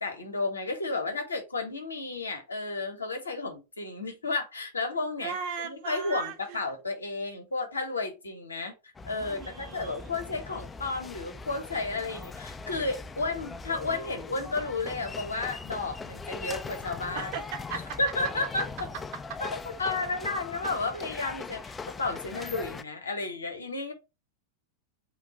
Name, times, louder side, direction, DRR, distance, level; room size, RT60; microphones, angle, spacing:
voice 1, 0.0-5.3 5.6-8.7 9.0-17.3 18.0-18.6 19.4-21.7 22.0-23.9, left 3 dB, 75° left, 1.1 m, -32 dB
voice 2, 5.2-6.6 9.3-10.1 17.1-18.0 19.3-19.4, right 6 dB, 45° right, 0.9 m, -37 dB
sound 1, 8.9-22.8, left 4 dB, 15° left, 0.3 m, -41 dB
3.8 x 2.6 x 4.5 m
figure-of-eight pair, 90°, 0 cm